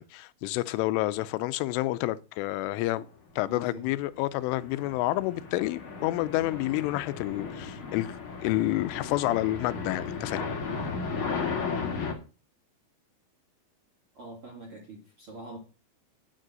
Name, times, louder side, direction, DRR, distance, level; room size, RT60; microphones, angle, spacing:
voice 1, 0.0-3.1 3.4-10.4, left 17 dB, 85° left, 3.2 m, -29 dB
voice 2, 3.4-3.9 14.1-15.6, right 2 dB, 45° right, 1.8 m, -44 dB
sound 1, 4.3-12.1, left 5 dB, 40° left, 2.0 m, -35 dB
9.5 x 6.6 x 7.6 m
omnidirectional pair, 5.5 m